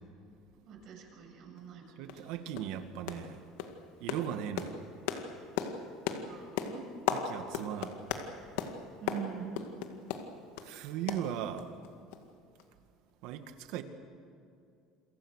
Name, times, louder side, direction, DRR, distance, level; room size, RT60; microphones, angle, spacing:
voice 1, 0.7-1.8 6.2-6.8 9.0-9.6, right 8 dB, 50° right, 1 dB, 7.1 m, -43 dB
sound 1, 1.6-1.7 2.1-2.3 2.5-2.8 3.1-3.3 3.6-10.7 11.1-11.9 12.1-12.2 12.6-12.7, left 8 dB, 90° left, 2.0 m, -37 dB
voice 2, 2.0-3.4 4.0-4.8 7.1-8.0 10.6-11.7 13.2-13.8, right 10 dB, 70° right, 8 dB, 2.0 m, -38 dB
29.0 x 24.0 x 6.6 m, 2.5 s
cardioid pair, 145°, 0 cm